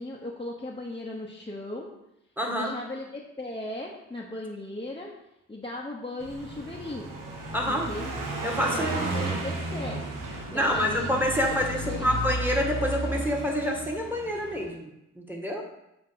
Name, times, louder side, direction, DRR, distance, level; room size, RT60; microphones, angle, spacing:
voice 1, 0.0-1.9 2.5-5.1 5.5-7.1 7.7-8.1 8.7-10.1 10.5-11.2 11.6-12.1, left 2 dB, 15° left, -3 dB, 1.0 m, -37 dB
voice 2, 2.4-2.8 7.5-7.9 8.4-9.1 10.5-14.9 15.1-15.6, equal, 5° right, 0 dB, 1.7 m, -27 dB
Car passing by, 6.2-14.6, right 2 dB, 85° right, 1.2 m, -33 dB
7.4 x 2.9 x 5.7 m, 0.86 s
cardioid pair, 45°, 32 cm